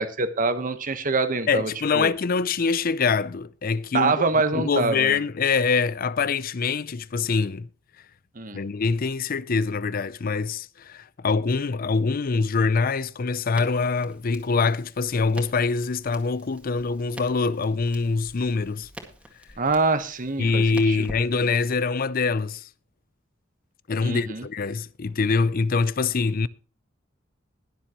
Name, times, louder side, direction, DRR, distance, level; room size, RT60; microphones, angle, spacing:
voice 1, 0.0-2.1 3.9-5.2 8.3-8.6 19.6-21.0 24.0-24.4, right 3 dB, 45° right, 1.2 m, -25 dB
voice 2, 1.5-4.2 4.5-7.7 8.5-18.9 20.4-22.7 23.9-26.5, left 4 dB, 45° left, 0.5 m, -24 dB
Crackle, 13.5-21.8, right 1 dB, 5° right, 2.0 m, -46 dB
21.0 x 7.4 x 3.0 m
head